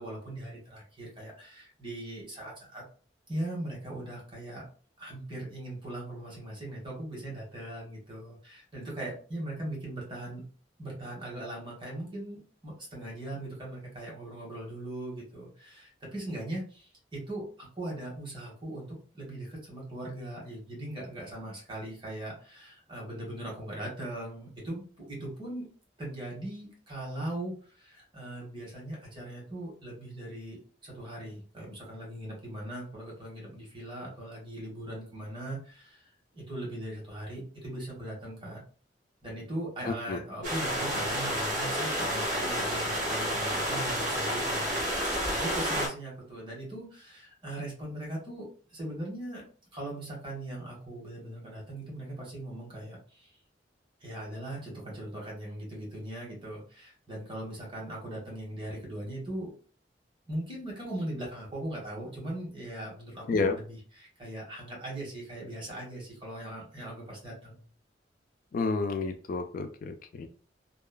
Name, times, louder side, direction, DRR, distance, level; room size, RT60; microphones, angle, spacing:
voice 1, 0.0-2.8 3.3-4.6 5.0-10.4 10.8-25.7 26.0-38.6 39.2-49.4 49.7-53.3 54.0-59.5 60.3-67.7, right 1 dB, 30° right, -3 dB, 1.3 m, -40 dB
sound 1, 40.4-45.9, equal, 50° right, 1.3 m, -30 dB
voice 2, 68.5-70.3, left 4 dB, 50° left, 7 dB, 0.3 m, -30 dB
2.9 x 2.3 x 2.2 m, 0.41 s
head